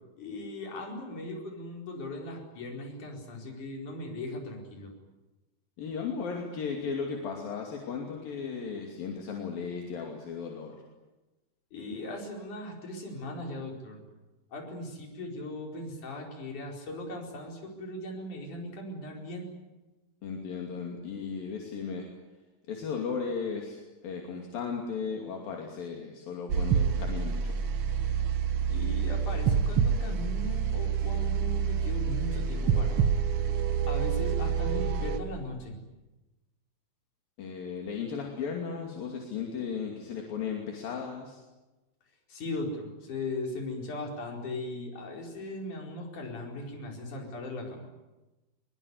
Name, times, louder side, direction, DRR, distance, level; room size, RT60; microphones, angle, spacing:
voice 1, 0.2-4.9 11.7-14.0 14.5-19.5 28.7-33.1 33.9-35.7 42.3-47.9, left 1 dB, 55° left, 1 dB, 6.2 m, -38 dB
voice 2, 5.8-10.8 20.2-22.1 22.7-27.5 37.4-41.4, left 6 dB, 75° left, 0 dB, 4.4 m, -36 dB
sound 1, 26.5-35.2, right 7 dB, 65° right, 1.5 m, -27 dB
23.0 x 23.0 x 9.7 m, 1.1 s
omnidirectional pair, 4.2 m